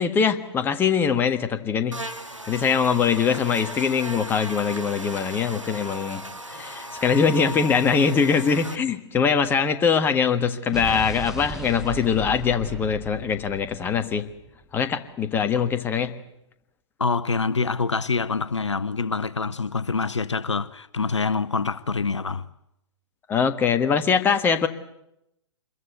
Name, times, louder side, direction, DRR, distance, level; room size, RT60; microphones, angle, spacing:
voice 1, 0.0-2.0 2.4-6.2 6.5-14.3 14.7-16.2 23.3-24.7, left 6 dB, 15° left, 1.5 m, -22 dB
Buzz, 1.9-8.8, right 1 dB, 90° right, 2.1 m, -37 dB
Explosion, 10.7-14.8, right 4 dB, 5° right, 1.5 m, -37 dB
voice 2, 17.0-22.5, left 4 dB, 70° left, 1.0 m, -26 dB
26.5 x 22.5 x 8.1 m
figure-of-eight pair, 115°, 16 cm